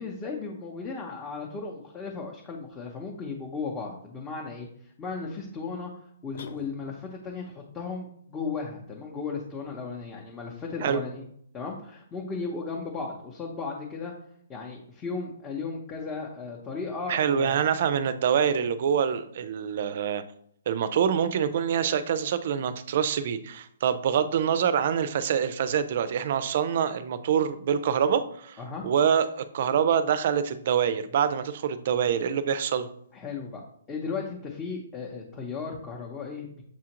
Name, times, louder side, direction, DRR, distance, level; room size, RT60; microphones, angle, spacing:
voice 1, 0.0-4.7 5.0-5.9 6.2-11.3 11.5-14.1 14.5-17.6 28.6-28.8 33.1-33.6 33.9-36.6, left 4 dB, 15° left, -1 dB, 0.7 m, -35 dB
sound 1, 6.3-7.3, left 5 dB, 65° left, 0.5 m, -46 dB
voice 2, 17.1-20.2 20.7-28.6 28.8-32.9, right 8 dB, 50° right, 12 dB, 0.4 m, -25 dB
7.1 x 2.4 x 2.9 m, 0.68 s
hypercardioid pair, 155°, 0 cm